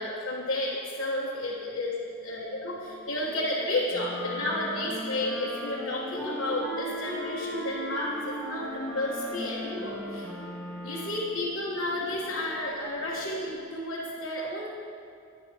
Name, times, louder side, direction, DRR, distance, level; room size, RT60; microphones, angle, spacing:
voice 1, 0.0-2.0 2.2-10.3 10.8-14.7, left 1 dB, 65° left, -7 dB, 1.4 m, -32 dB
sound 1, 1.6-13.5, left 2 dB, 15° left, 0.6 m, -44 dB
Wind instrument woodwind instrument, 3.9-11.3, equal, ahead, 1.3 m, -38 dB
11.5 x 10.0 x 3.0 m, 2.4 s
head